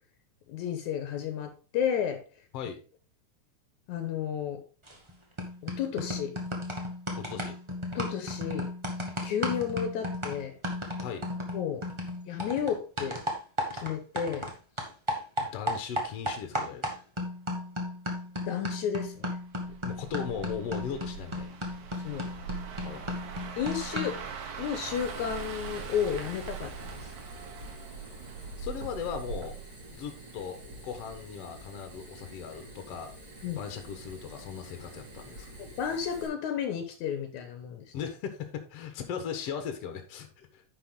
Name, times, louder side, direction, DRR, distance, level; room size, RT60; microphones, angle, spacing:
voice 1, 0.5-2.2 3.9-4.6 5.6-6.3 7.9-8.7 9.2-10.5 11.5-11.8 12.3-13.2 13.7-14.4 18.5-19.3 22.0-22.3 23.6-24.2 24.6-27.1 33.4-33.6 35.6-37.8, left 8 dB, 80° left, 7 dB, 2.5 m, -32 dB
sound 1, 4.9-5.1 5.4-14.5 14.8-24.3, left 1 dB, 20° right, 0.8 m, -35 dB
voice 2, 7.2-7.6 11.0-11.3 15.4-17.0 19.8-21.6 22.8-23.0 28.6-29.6 29.9-33.1 33.6-35.5 37.9-40.6, left 7 dB, 60° left, 6 dB, 2.1 m, -38 dB
sound 2, 19.5-30.6 31.0-31.3, right 6 dB, 75° right, 2.6 m, -41 dB
Fire, 24.9-36.3, right 1 dB, 35° right, 5.0 m, -48 dB
10.5 x 5.5 x 3.9 m, 0.35 s
omnidirectional pair, 3.3 m